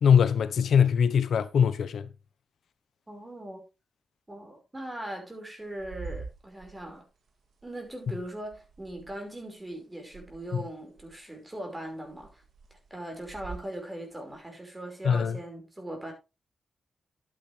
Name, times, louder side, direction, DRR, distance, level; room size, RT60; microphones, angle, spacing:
voice 1, 0.0-2.1 10.5-10.6 15.0-15.4, left 7 dB, 80° left, 1.0 m, -22 dB
voice 2, 3.1-3.6 4.3-7.1 7.6-12.4 12.7-16.1, right 1 dB, 20° right, 5.2 m, -40 dB
sound 1, 5.6-9.8 10.1-11.5 11.8-13.8 14.3-14.4, right 4 dB, 75° right, 2.5 m, -45 dB
11.5 x 9.0 x 3.3 m
cardioid pair, 65°, 0 cm